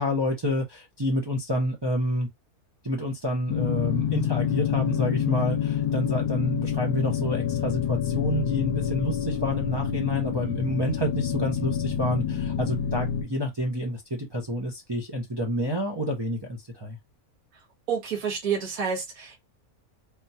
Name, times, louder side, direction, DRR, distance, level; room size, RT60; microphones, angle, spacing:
voice 1, 0.0-2.3 2.8-17.0, equal, 30° right, 0.4 m, -29 dB
sound 1, 3.5-13.2, left 9 dB, 85° left, 1.1 m, -27 dB
voice 2, 17.9-19.4, right 6 dB, 70° right, 1.5 m, -29 dB
3.6 x 2.3 x 2.7 m
omnidirectional pair, 1.6 m